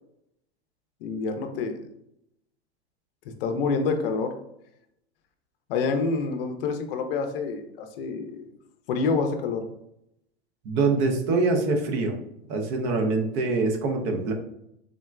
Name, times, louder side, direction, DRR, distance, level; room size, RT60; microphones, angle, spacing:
voice 1, 1.0-1.8 3.4-4.4 5.7-8.4 8.9-9.7, left 4 dB, 60° left, 6 dB, 0.5 m, -27 dB
voice 2, 10.6-12.1 12.5-14.3, right 3 dB, 45° right, 3 dB, 0.7 m, -24 dB
3.7 x 2.1 x 2.3 m, 0.78 s
hypercardioid pair, 105°, 33 cm